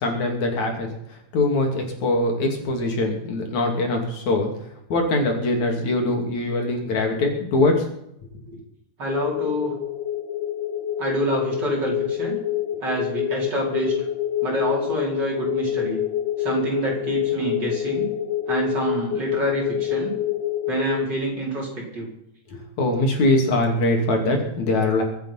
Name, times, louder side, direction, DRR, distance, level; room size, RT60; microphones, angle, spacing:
voice 1, 0.0-0.9 1.3-4.5 4.9-7.8 22.5-25.0, left 2 dB, 65° left, 2 dB, 4.0 m, -22 dB
voice 2, 9.0-9.7 11.0-12.4 12.8-13.9 14.4-16.0 16.4-18.1 18.5-20.1 20.7-22.1, right 2 dB, 35° right, -2 dB, 5.4 m, -27 dB
sound 1, 9.1-21.1, left 11 dB, 90° left, 3.1 m, -27 dB
23.5 x 9.1 x 5.8 m, 0.78 s
omnidirectional pair, 3.5 m